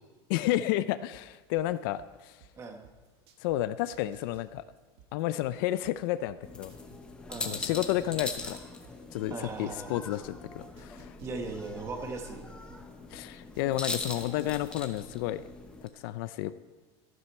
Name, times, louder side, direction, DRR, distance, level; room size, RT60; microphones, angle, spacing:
voice 1, 0.3-2.4 3.4-4.6 5.1-6.8 7.5-8.6 9.1-11.1 13.1-15.4 15.8-16.5, left 14 dB, 55° left, 14 dB, 0.4 m, -31 dB
sound 1, 1.1-3.6 3.9-7.0 7.3-10.4 10.8-13.9 14.2-14.7, right 11 dB, 70° right, 1.5 m, -57 dB
sound 2, 6.4-15.9, left 3 dB, 5° left, 0.8 m, -41 dB
voice 2, 7.3-7.6 9.3-10.0 11.2-12.5, right 3 dB, 20° right, 4 dB, 1.2 m, -38 dB
13.5 x 12.5 x 4.4 m, 1.4 s
cardioid pair, 180°, 14 cm